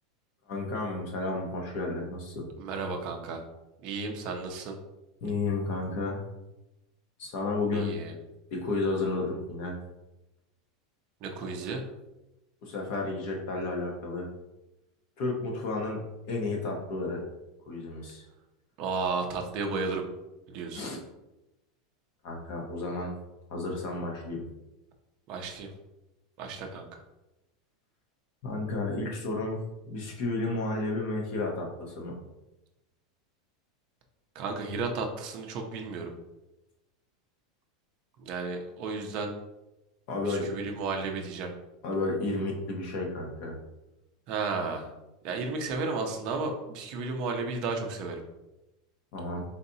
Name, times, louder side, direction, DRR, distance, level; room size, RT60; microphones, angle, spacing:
voice 1, 0.5-2.5 5.2-6.2 7.2-8.0 8.5-9.7 12.6-14.3 15.2-16.0 16.3-17.2 17.7-18.2 20.7-21.0 22.2-23.1 23.5-24.4 28.4-32.1 40.1-40.5 41.8-43.6 49.1-49.4, left 2 dB, 40° left, 0 dB, 0.9 m, -32 dB
voice 2, 2.6-3.4 3.8-4.8 7.7-8.1 11.2-11.8 18.8-20.0 20.5-20.8 25.3-25.7 26.4-27.0 34.3-36.1 38.2-39.3 40.2-41.5 44.3-44.9 45.2-48.2, right 4 dB, 35° right, 3 dB, 0.6 m, -33 dB
4.1 x 4.0 x 2.7 m, 0.97 s
supercardioid pair, 180°, 3 cm